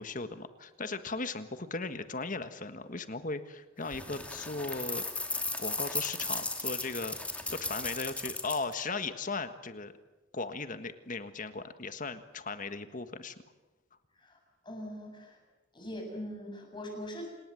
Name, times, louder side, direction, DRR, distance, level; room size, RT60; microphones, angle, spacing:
voice 1, 0.0-5.1 5.6-9.9 10.3-13.3, left 3 dB, 45° left, 10 dB, 1.6 m, -37 dB
sound 1, 3.9-8.7, left 2 dB, 5° left, 2.5 m, -36 dB
voice 2, 14.6-15.4 15.7-17.3, equal, 25° left, 2 dB, 7.3 m, -41 dB
27.5 x 19.5 x 7.9 m, 1.1 s
head